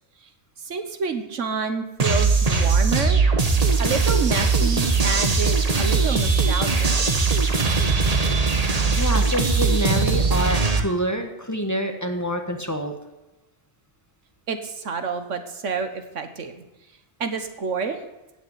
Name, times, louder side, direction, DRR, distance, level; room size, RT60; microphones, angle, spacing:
voice 1, 0.6-3.2 3.8-6.9 14.5-16.6 17.2-18.0, right 5 dB, 90° right, 8 dB, 1.7 m, -28 dB
sound 1, 2.0-10.8, right 4 dB, 35° right, 1.2 m, -20 dB
voice 2, 9.0-12.9, equal, 15° left, 4 dB, 1.4 m, -26 dB
16.5 x 6.1 x 9.5 m, 1.0 s
omnidirectional pair, 1.2 m